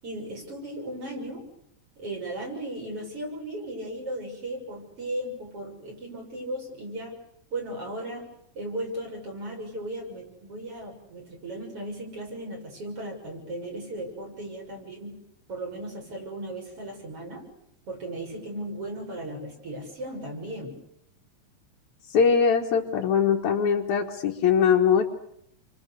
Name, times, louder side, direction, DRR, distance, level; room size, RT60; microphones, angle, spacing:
voice 1, 0.0-1.4 2.0-7.1 7.5-8.3 8.5-15.1 15.5-17.4 17.9-20.8, right 1 dB, 45° right, 0 dB, 7.8 m, -36 dB
voice 2, 22.1-25.1, left 6 dB, 70° left, -1 dB, 2.9 m, -21 dB
30.0 x 24.5 x 6.8 m, 0.74 s
omnidirectional pair, 3.6 m